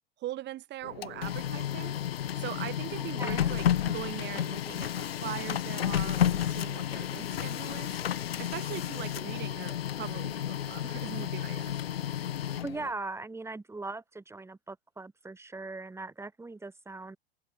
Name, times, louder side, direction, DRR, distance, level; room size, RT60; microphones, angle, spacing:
voice 1, 0.2-2.0 2.4-11.7, right 14 dB, 35° right, 7.4 m, -41 dB
Printer, 0.8-12.9, left 10 dB, 75° left, 1.2 m, -32 dB
voice 2, 3.0-3.5 12.5-17.2, right 3 dB, 10° right, 7.2 m, -40 dB
hypercardioid pair, 100°, 30 cm